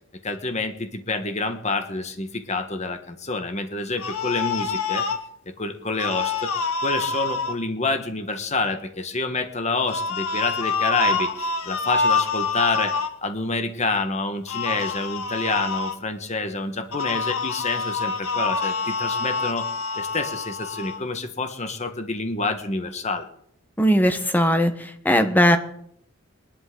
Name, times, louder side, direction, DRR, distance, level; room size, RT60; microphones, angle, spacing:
voice 1, 0.2-5.1 5.5-6.5 6.8-12.9 13.2-19.7 19.9-23.3, left 3 dB, 30° left, 7 dB, 1.4 m, -28 dB
sound 1, 4.0-5.2 5.9-7.5 9.9-13.1 14.5-16.0 16.9-21.0, left 4 dB, 85° left, 1.2 m, -26 dB
voice 2, 23.8-24.7 25.0-25.6, equal, 10° left, 7 dB, 1.1 m, -18 dB
21.0 x 11.5 x 3.9 m, 0.69 s
head